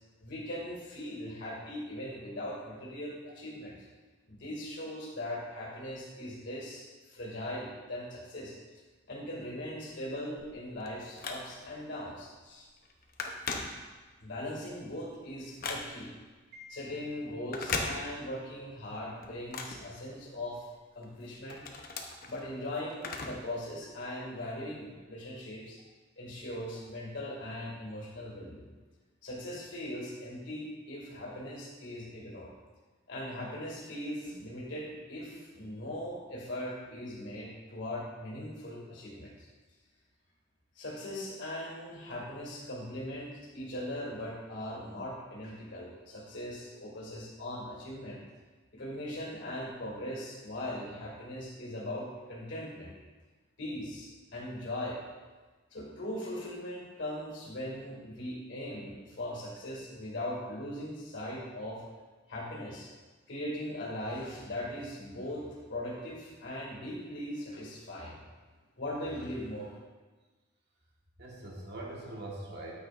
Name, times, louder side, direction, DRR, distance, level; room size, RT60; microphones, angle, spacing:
voice 1, 0.2-3.8 4.3-8.5 9.1-12.7 14.2-16.1 16.7-20.7 20.9-21.6 22.3-25.8 26.2-28.7 29.2-32.5 33.1-39.5 40.7-48.2 48.7-52.9 53.6-55.0 55.7-61.8 62.3-62.9 63.3-68.2 68.8-69.8, left 1 dB, 70° left, -4 dB, 2.4 m, -40 dB
Telephone, 10.4-11.8 12.3-12.5 12.8-14.3 14.7-16.2 17.4-18.5 18.8-20.6 21.0-23.5 23.8-23.9 24.8-24.9, left 3 dB, 50° left, 0.9 m, -39 dB
voice 2, 16.5-17.1 71.2-72.7, right 1 dB, 60° right, -3 dB, 1.5 m, -43 dB
8.9 x 8.5 x 2.6 m, 1.3 s
head